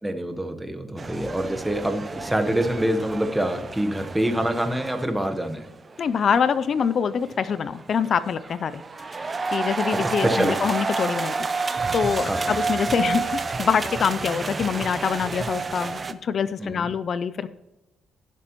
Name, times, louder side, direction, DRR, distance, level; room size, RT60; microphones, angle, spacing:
voice 1, 0.0-5.7 9.9-10.6 12.2-12.5 16.6-16.9, right 1 dB, 10° right, 6 dB, 1.1 m, -26 dB
sound 1, 1.0-16.1, right 4 dB, 30° right, 0.7 m, -30 dB
voice 2, 6.0-8.8 9.1-9.2 9.5-11.3 11.9-17.5, left 7 dB, 55° left, 15 dB, 0.4 m, -25 dB
15.5 x 7.5 x 3.0 m, 0.99 s
cardioid pair, 90°, 0 cm